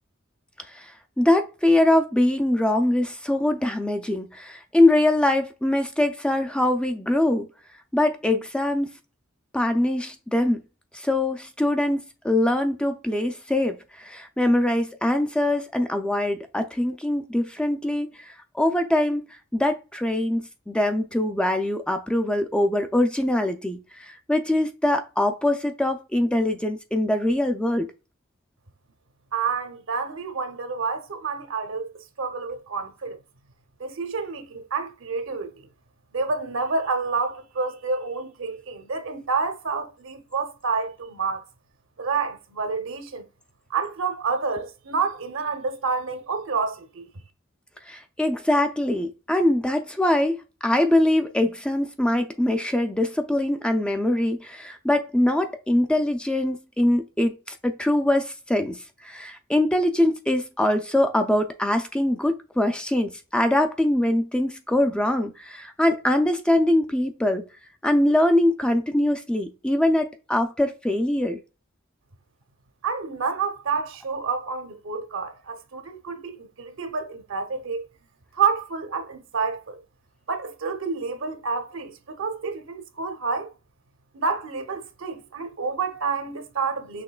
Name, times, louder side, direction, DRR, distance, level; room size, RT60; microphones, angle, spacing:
voice 1, 0.7-7.5 7.9-8.9 9.5-10.6 10.9-19.3 19.5-27.9 47.9-67.5 67.8-71.4, left 1 dB, 5° left, 0.3 m, -23 dB
voice 2, 29.3-31.9 32.2-33.2 33.8-35.7 36.1-41.4 42.0-43.2 43.7-47.1 72.8-77.8 78.3-79.8 80.3-83.5 84.1-87.0, right 5 dB, 65° right, 0.8 m, -29 dB
6.0 x 3.0 x 2.3 m
head